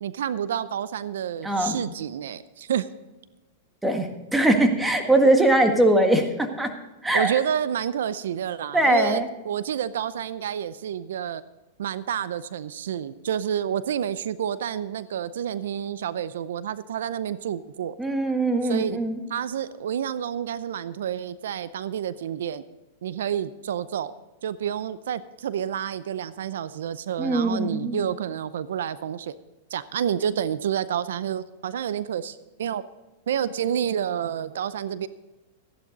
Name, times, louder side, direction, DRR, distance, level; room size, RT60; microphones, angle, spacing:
voice 1, 0.0-2.9 7.1-11.4 11.8-18.0 18.6-19.0 19.3-22.6 23.0-24.1 24.4-29.3 29.7-32.8 33.3-35.1, right 9 dB, 80° right, 16 dB, 0.5 m, -29 dB
voice 2, 1.4-1.8 3.8-6.7 7.0-7.3 8.7-9.3 18.0-19.2 27.2-28.0, right 1 dB, 5° right, 5 dB, 1.6 m, -21 dB
14.5 x 11.0 x 4.0 m, 1.1 s
hypercardioid pair, 125°, 0 cm